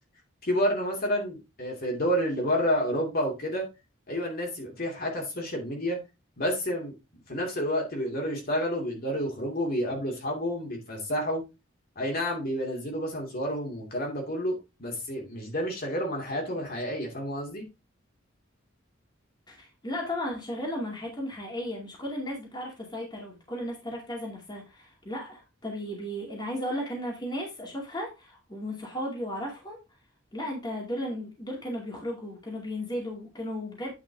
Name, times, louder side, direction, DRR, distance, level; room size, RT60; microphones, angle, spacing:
voice 1, 0.4-3.7 4.1-6.0 6.4-6.9 7.3-11.4 12.0-17.6, equal, 45° left, 2.6 m, -29 dB
voice 2, 19.5-29.8 30.3-33.9, equal, 20° left, 2.3 m, -35 dB
9.0 x 5.3 x 3.5 m
head